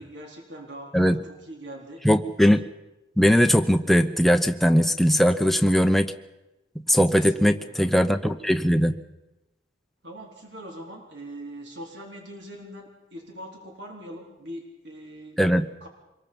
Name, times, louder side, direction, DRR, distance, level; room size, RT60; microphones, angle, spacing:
voice 1, 0.0-2.0 7.1-7.9 10.0-15.4 15.8-15.9, right 1 dB, 65° right, 0 dB, 4.2 m, -42 dB
voice 2, 2.0-2.7 3.2-6.1 6.9-9.0 15.4-15.7, equal, ahead, 7 dB, 0.8 m, -20 dB
25.5 x 22.5 x 5.4 m, 0.99 s
head